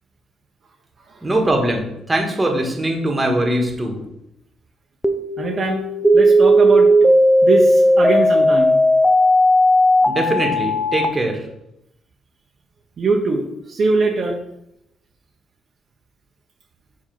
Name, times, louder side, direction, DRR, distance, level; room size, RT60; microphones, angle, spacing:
voice 1, 1.2-4.0 10.1-11.5, right 1 dB, 15° right, 2 dB, 1.6 m, -21 dB
sound 1, 5.0-11.0, equal, ahead, 0.7 m, -15 dB
voice 2, 5.4-5.8 6.1-6.9 7.4-8.8 13.0-14.4, right 3 dB, 50° right, 1 dB, 1.0 m, -21 dB
5.0 x 4.2 x 5.9 m, 0.81 s
cardioid pair, 90°, 0 cm